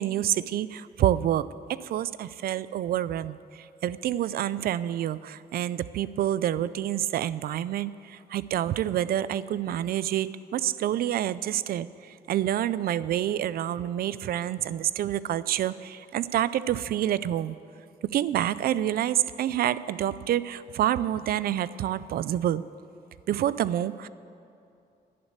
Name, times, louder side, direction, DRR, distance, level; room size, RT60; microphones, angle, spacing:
voice 1, 0.0-17.6 18.1-22.6 23.3-24.1, right 11 dB, 65° right, 17 dB, 0.4 m, -28 dB
11.0 x 10.5 x 8.1 m, 2.6 s
wide cardioid pair, 175°, 17 cm